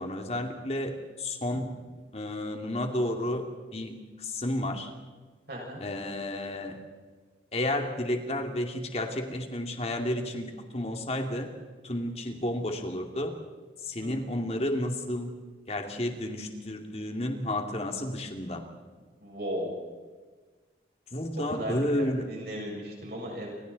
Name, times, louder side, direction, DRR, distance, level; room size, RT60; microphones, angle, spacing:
voice 1, 0.0-1.8 2.1-3.4 3.7-4.9 5.8-6.8 7.5-11.5 11.8-13.3 13.8-15.3 15.7-18.6 21.1-22.3, left 1 dB, 35° left, 3 dB, 2.6 m, -31 dB
voice 2, 5.5-5.8 14.0-14.1 14.4-14.5 19.2-19.7 21.3-23.5, equal, 55° right, -2 dB, 6.5 m, -36 dB
29.5 x 27.0 x 4.2 m, 1.4 s
head